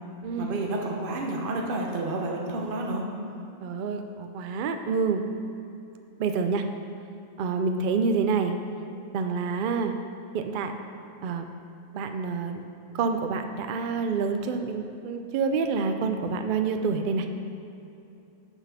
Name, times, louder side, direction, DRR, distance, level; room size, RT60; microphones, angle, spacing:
voice 1, 0.4-3.0, right 2 dB, 40° right, 0 dB, 1.0 m, -30 dB
voice 2, 3.6-5.2 6.2-6.7 7.4-8.5 9.1-9.9 10.3-10.7 11.2-11.4 11.9-12.6 12.9-17.3, right 5 dB, 85° right, 6 dB, 0.4 m, -27 dB
6.9 x 6.0 x 5.7 m, 2.8 s
omnidirectional pair, 1.5 m